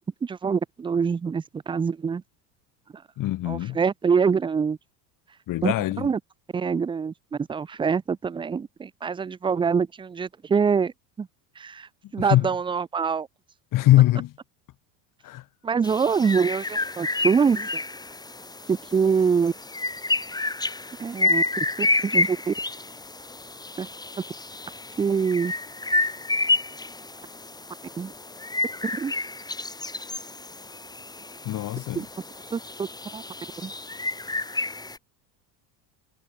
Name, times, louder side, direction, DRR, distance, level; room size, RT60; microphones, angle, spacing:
voice 1, 0.2-2.2 2.9-3.0 3.5-4.8 5.6-6.2 6.5-11.3 11.6-13.3 15.6-17.7 18.7-19.5 21.0-22.5 23.8-23.9 25.0-25.5 28.0-28.1 28.9-29.1 32.0-32.1 32.5-32.9 33.1-33.2 33.6-33.7, right 6 dB, 10° right, 0.4 m, -25 dB
voice 2, 3.2-3.8 5.5-6.1 12.3-12.5 13.7-14.3 15.2-15.4 31.4-32.0, left 15 dB, 40° left, 1.2 m, -22 dB
sound 1, 15.8-35.0, left 2 dB, 10° left, 1.6 m, -30 dB
supercardioid pair, 105°, 48 cm